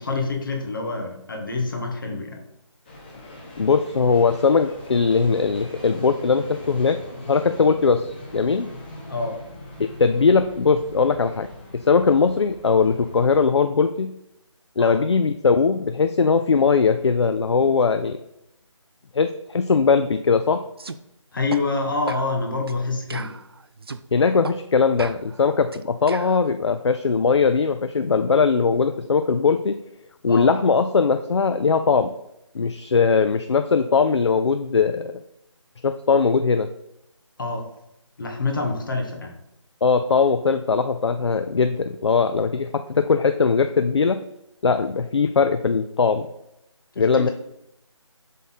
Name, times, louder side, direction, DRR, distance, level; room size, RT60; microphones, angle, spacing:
voice 1, 0.0-2.4 9.1-9.4 14.8-15.0 21.3-23.3 30.3-30.5 37.4-37.6 38.2-39.3 47.1-47.3, left 3 dB, 40° left, 2 dB, 1.2 m, -26 dB
sound 1, 2.8-13.5, left 1 dB, 20° left, 0.9 m, -41 dB
voice 2, 3.6-7.0 7.3-8.7 10.0-11.5 11.7-14.1 14.8-18.2 19.1-20.6 24.1-29.8 30.2-32.1 32.5-35.1 35.8-36.7 39.8-44.2 44.6-46.3 47.0-47.3, left 5 dB, 60° left, 8 dB, 0.4 m, -20 dB
sound 2, 20.8-21.0 21.5-21.6 22.1-22.3 22.7-22.8 23.1-24.0 24.4-24.6 25.0-26.4, right 4 dB, 50° right, 0.4 m, -36 dB
7.3 x 3.7 x 4.2 m, 0.82 s
figure-of-eight pair, 170°, 16 cm